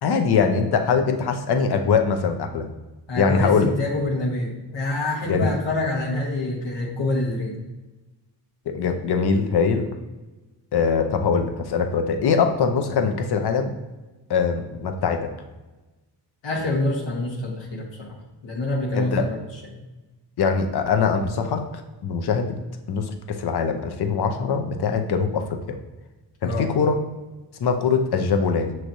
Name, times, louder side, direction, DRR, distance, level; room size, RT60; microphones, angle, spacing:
voice 1, 0.0-2.7 3.2-3.7 5.3-5.5 8.7-9.9 10.7-13.7 14.3-15.3 18.9-19.3 20.4-22.6 22.9-25.8 26.4-27.0 27.6-28.7, left 5 dB, 60° left, 6 dB, 0.7 m, -22 dB
voice 2, 3.1-7.6 16.4-18.2 18.4-19.4 26.4-26.7, left 2 dB, 75° left, 0 dB, 1.2 m, -26 dB
6.1 x 3.1 x 2.7 m, 1.1 s
cardioid pair, 60°, 44 cm